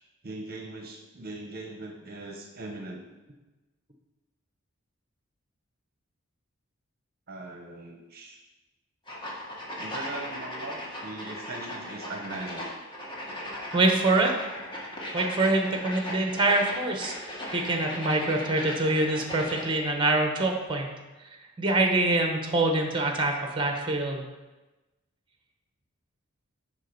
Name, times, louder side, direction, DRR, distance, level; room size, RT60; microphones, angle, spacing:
voice 1, 0.2-3.0 7.3-8.4 9.8-12.7, right 2 dB, 50° right, 2 dB, 0.9 m, -40 dB
sound 1, 9.1-19.8, left 1 dB, 25° left, 1.4 m, -38 dB
voice 2, 13.7-14.3 15.1-20.9 21.6-24.3, right 2 dB, 25° right, 3 dB, 1.1 m, -25 dB
7.5 x 5.0 x 5.3 m, 1.1 s
head